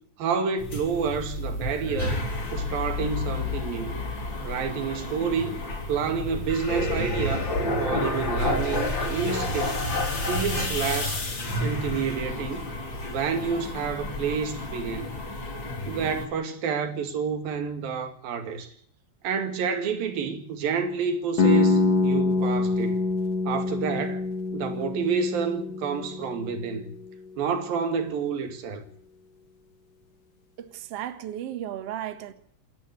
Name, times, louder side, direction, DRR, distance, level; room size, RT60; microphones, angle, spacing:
voice 1, 0.2-2.2 2.5-4.0 4.4-5.5 5.9-7.5 7.8-9.7 10.3-11.2 11.6-12.7 13.1-15.1 15.9-18.7 19.2-23.0 23.5-24.2 24.5-26.9 27.4-28.8, right 6 dB, 85° right, 4.0 m, -29 dB
sound 1, 0.6-16.3, left 2 dB, 35° left, 3.7 m, -30 dB
sound 2, 21.4-27.1, left 3 dB, 85° left, 0.8 m, -25 dB
voice 2, 30.6-32.3, right 11 dB, 55° right, 2.2 m, -35 dB
27.5 x 12.0 x 8.3 m
omnidirectional pair, 4.0 m